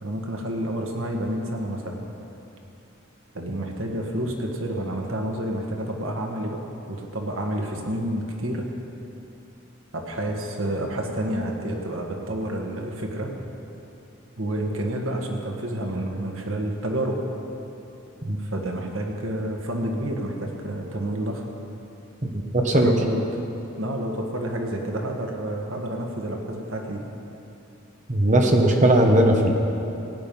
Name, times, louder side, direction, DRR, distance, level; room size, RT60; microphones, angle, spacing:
voice 1, 0.0-2.0 3.3-6.6 6.9-8.7 9.9-13.4 14.4-17.2 18.4-21.4 22.7-23.2 23.8-27.0, right 1 dB, 75° right, 1 dB, 1.6 m, -29 dB
voice 2, 22.2-22.9 28.1-29.5, right 1 dB, 35° right, 2 dB, 1.1 m, -19 dB
16.0 x 9.2 x 5.4 m, 2.9 s
head